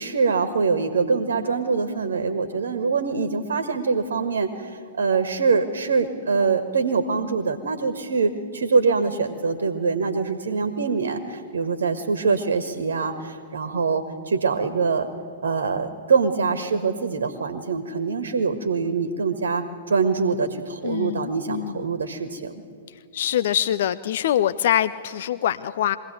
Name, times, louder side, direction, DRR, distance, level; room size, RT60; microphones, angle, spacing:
voice 1, 0.0-15.1 15.4-22.6, right 4 dB, 60° right, 10 dB, 1.5 m, -24 dB
voice 2, 20.8-21.8 23.1-26.0, left 11 dB, 50° left, 15 dB, 0.5 m, -24 dB
23.0 x 16.5 x 9.1 m, 2.2 s
figure-of-eight pair, 110°, 0 cm